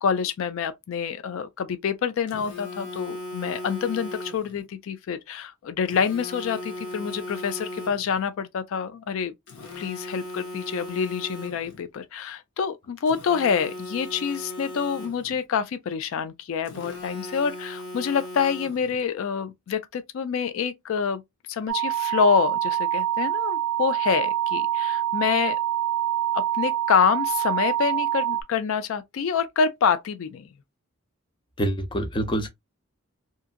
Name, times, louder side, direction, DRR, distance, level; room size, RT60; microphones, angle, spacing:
voice 1, 0.0-9.3 9.8-21.2 21.5-25.6 26.3-30.5, left 6 dB, 65° left, 0.3 m, -27 dB
Telephone, 2.3-4.6 5.9-8.2 9.5-11.8 13.1-15.4 16.6-19.0, left 1 dB, 85° left, 0.8 m, -38 dB
sound 1, 21.7-28.4, right 12 dB, 60° right, 0.4 m, -25 dB
voice 2, 31.6-32.5, right 1 dB, 20° left, 0.6 m, -26 dB
2.7 x 2.5 x 2.4 m
head